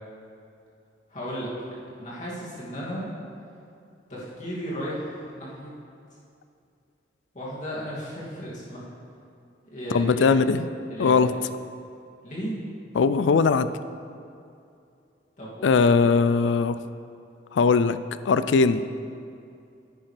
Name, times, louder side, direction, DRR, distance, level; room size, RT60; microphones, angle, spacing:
voice 1, 1.1-3.1 4.1-5.7 7.3-8.8 9.7-10.4 10.9-11.2 12.2-12.6 15.4-16.1, equal, 45° left, -7 dB, 2.5 m, -35 dB
voice 2, 9.9-10.6 11.0-11.3 12.9-13.7 15.6-16.8 17.5-18.0 18.3-18.8, left 4 dB, 90° left, 13 dB, 0.4 m, -20 dB
10.0 x 9.8 x 3.4 m, 2.5 s
head